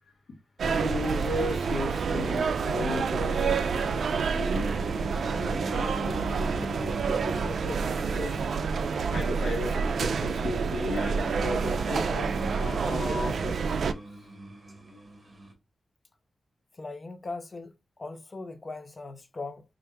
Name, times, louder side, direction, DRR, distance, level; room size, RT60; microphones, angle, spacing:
voice 1, 0.6-8.4 9.1-13.9, left 1 dB, 85° left, 0.8 m, -36 dB
sound 1, 0.6-13.9, right 5 dB, 70° right, 0.3 m, -28 dB
sound 2, 4.3-15.5, right 1 dB, 15° right, 1.7 m, -39 dB
voice 2, 16.8-19.6, left 3 dB, 30° left, 0.5 m, -39 dB
4.4 x 2.5 x 3.3 m
wide cardioid pair, 145°, 0 cm